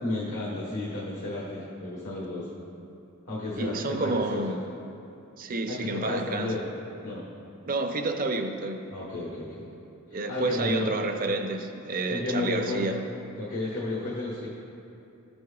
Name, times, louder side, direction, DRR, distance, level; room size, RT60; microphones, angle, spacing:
voice 1, 0.0-2.5 3.3-4.4 5.7-6.6 7.0-7.2 8.9-9.6 10.1-10.9 12.1-12.9 13.3-14.5, left 2 dB, 80° left, -8 dB, 1.5 m, -32 dB
voice 2, 3.6-4.6 5.4-6.5 7.7-8.8 10.1-13.0, right 2 dB, 40° right, 5 dB, 0.6 m, -29 dB
14.5 x 7.8 x 2.4 m, 2.8 s
head